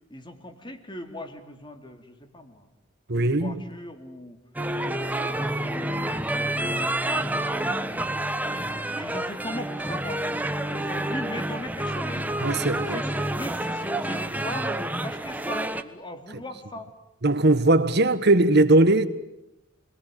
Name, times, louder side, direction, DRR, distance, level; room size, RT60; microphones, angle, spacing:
voice 1, 0.1-2.7 3.1-4.4 4.8-8.1 8.7-10.2 10.7-12.3 12.8-14.7 15.0-16.9, left 1 dB, 25° left, 2.9 m, -40 dB
voice 2, 3.1-3.5 12.4-13.0 17.2-19.1, right 2 dB, 55° right, 1.6 m, -19 dB
sound 1, 4.6-15.8, right 1 dB, 10° right, 1.3 m, -28 dB
29.5 x 22.0 x 9.2 m
head